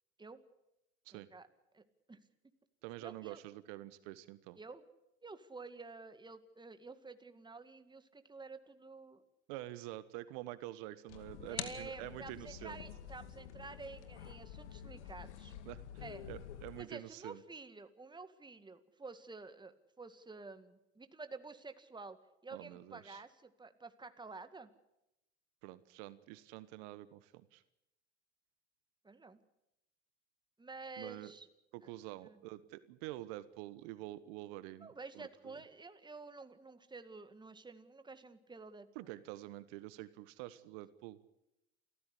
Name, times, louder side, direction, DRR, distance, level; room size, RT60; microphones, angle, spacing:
voice 1, 1.1-1.5 1.7-2.2 3.0-3.4 4.6-4.8 5.2-9.2 11.5-15.5 16.0-16.3 16.8-22.2 22.4-24.7 29.0-29.4 30.6-31.5 31.8-31.9 32.2-32.4 34.8-39.1, right 3 dB, 15° right, 10 dB, 2.0 m, -50 dB
voice 2, 2.8-4.6 9.5-12.8 15.7-17.4 22.5-23.2 25.6-27.6 31.0-31.3 31.7-34.9 35.1-35.5 38.9-41.2, right 16 dB, 65° right, 15 dB, 1.2 m, -47 dB
sound 1, 11.1-16.8, left 10 dB, 75° left, 2.4 m, -48 dB
28.5 x 15.0 x 8.4 m, 0.88 s
hypercardioid pair, 75°, 34 cm